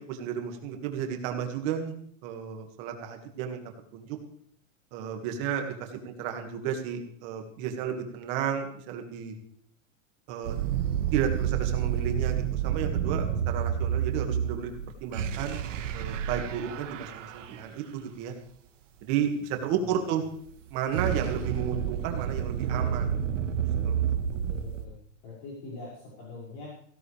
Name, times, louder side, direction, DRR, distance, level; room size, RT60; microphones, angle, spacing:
voice 1, 0.0-1.9 2.2-3.6 3.9-4.2 4.9-9.3 10.3-10.6 11.1-14.7 15.0-15.6 15.9-18.3 19.0-20.2 20.7-23.2 23.8-24.2, right 8 dB, 35° right, 4 dB, 2.1 m, -32 dB
sound 1, 10.4-17.6 20.5-24.8, right 9 dB, 70° right, 1.6 m, -29 dB
voice 2, 24.5-24.9 25.2-26.7, left 3 dB, 35° left, -5 dB, 6.4 m, -43 dB
16.5 x 16.5 x 3.5 m, 0.62 s
supercardioid pair, 165°, 39 cm